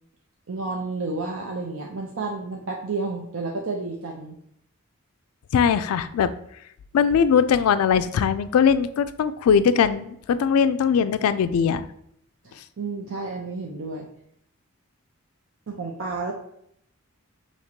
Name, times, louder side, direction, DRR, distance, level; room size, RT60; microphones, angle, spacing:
voice 1, 0.5-4.4 12.4-14.1 15.7-16.3, right 3 dB, 65° right, 0 dB, 0.5 m, -31 dB
voice 2, 5.5-6.3 6.9-11.9, left 7 dB, 85° left, 12 dB, 0.3 m, -20 dB
5.8 x 3.0 x 2.8 m, 0.74 s
head